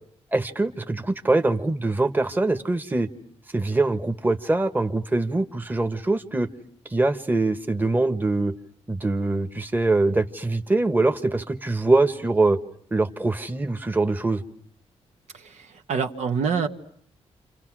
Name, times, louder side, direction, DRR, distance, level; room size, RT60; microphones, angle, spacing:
voice 1, 0.3-3.1 3.5-6.5 6.9-8.5 8.9-12.6 12.9-14.4, right 2 dB, 15° right, 8 dB, 1.3 m, -23 dB
voice 2, 15.6-16.7, right 6 dB, 75° right, 4 dB, 1.7 m, -26 dB
30.0 x 27.5 x 6.2 m, 0.64 s
cardioid pair, 95°, 12 cm